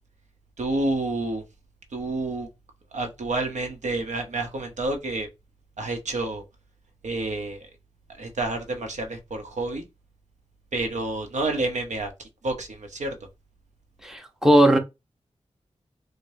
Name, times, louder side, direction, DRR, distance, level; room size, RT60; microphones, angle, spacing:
voice 1, 0.6-1.4 1.9-2.5 2.9-5.3 5.8-6.4 7.0-7.6 8.2-9.8 10.7-12.1 12.4-13.1, right 2 dB, 85° right, 0.8 m, -29 dB
voice 2, 14.0-14.8, right 1 dB, 5° right, 0.8 m, -18 dB
4.8 x 2.1 x 2.7 m
wide cardioid pair, 70°, 12 cm